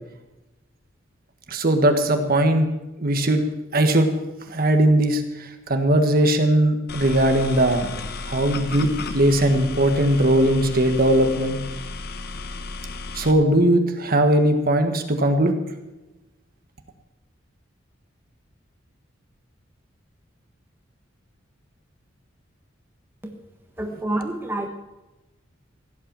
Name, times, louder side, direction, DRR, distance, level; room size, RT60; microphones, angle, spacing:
voice 1, 1.5-2.7 3.0-3.4 3.7-4.1 4.5-7.8 8.3-11.6 13.1-15.5, right 1 dB, 50° right, 6 dB, 1.6 m, -19 dB
sound 1, 6.9-13.3, left 3 dB, 55° left, 1.1 m, -33 dB
voice 2, 23.8-24.7, right 1 dB, 10° right, 3 dB, 1.3 m, -28 dB
16.0 x 8.9 x 7.5 m, 1.0 s
head